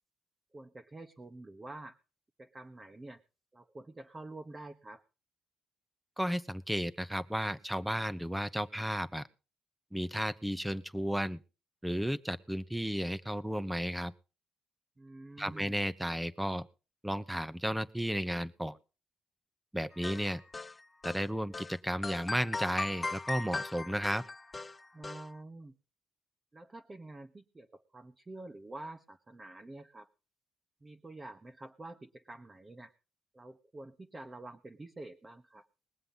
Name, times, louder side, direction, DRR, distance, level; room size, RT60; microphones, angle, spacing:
voice 1, 0.5-2.0 2.4-3.2 3.5-5.0 15.0-15.8 24.9-25.8 26.5-30.1 30.8-32.9 33.3-35.7, right 2 dB, 25° right, 6 dB, 1.2 m, -48 dB
voice 2, 6.2-9.3 9.9-11.4 11.8-14.1 15.4-16.7 17.0-18.8 19.7-20.4 21.0-24.2, equal, 5° right, 16 dB, 1.0 m, -33 dB
sound 1, 20.0-21.2 21.5-21.7 22.0-25.2, left 3 dB, 25° left, 0.6 m, -38 dB
20.5 x 7.7 x 5.6 m, 0.35 s
cardioid pair, 90°, 0 cm